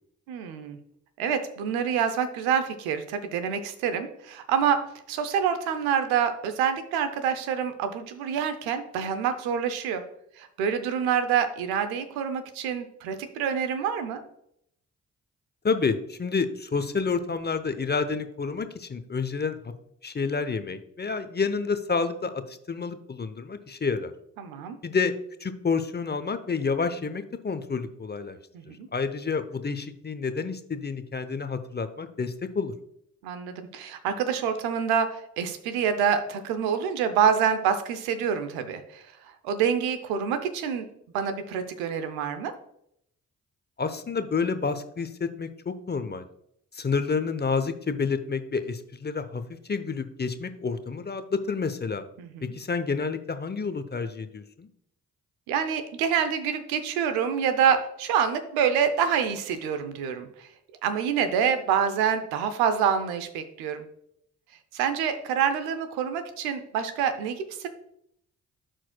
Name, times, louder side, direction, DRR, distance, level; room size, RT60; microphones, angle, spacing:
voice 1, 0.3-0.8 1.2-10.0 10.4-14.2 24.4-24.8 28.5-28.9 33.2-39.0 39.4-40.9 41.1-42.5 52.2-52.5 55.5-60.5 60.8-63.8 64.7-67.7, right 7 dB, 90° right, 9 dB, 0.7 m, -27 dB
voice 2, 15.6-19.7 20.0-24.1 24.8-25.1 25.4-28.4 28.9-32.7 43.8-46.2 46.7-52.0 52.4-54.7, left 5 dB, 30° left, 11 dB, 0.7 m, -29 dB
12.5 x 4.5 x 2.2 m, 0.73 s
hypercardioid pair, 45°, 36 cm